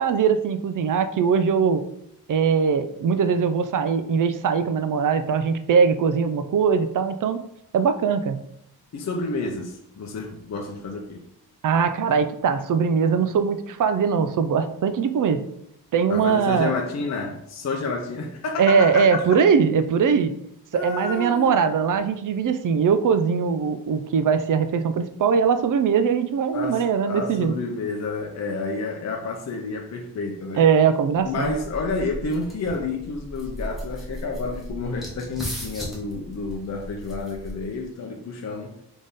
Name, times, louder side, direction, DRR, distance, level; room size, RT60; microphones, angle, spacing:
voice 1, 0.0-1.9 2.3-7.4 7.7-8.4 11.6-15.5 15.9-16.8 18.6-20.3 20.7-27.5 30.5-31.5, right 6 dB, 55° right, 0.4 m, -21 dB
voice 2, 8.9-11.2 16.1-19.0 20.7-21.6 26.5-30.6 31.2-38.7, left 3 dB, 45° left, 0.6 m, -30 dB
sound 1, 31.3-37.9, equal, ahead, 1.1 m, -37 dB
3.5 x 3.4 x 4.0 m
wide cardioid pair, 140°, 39 cm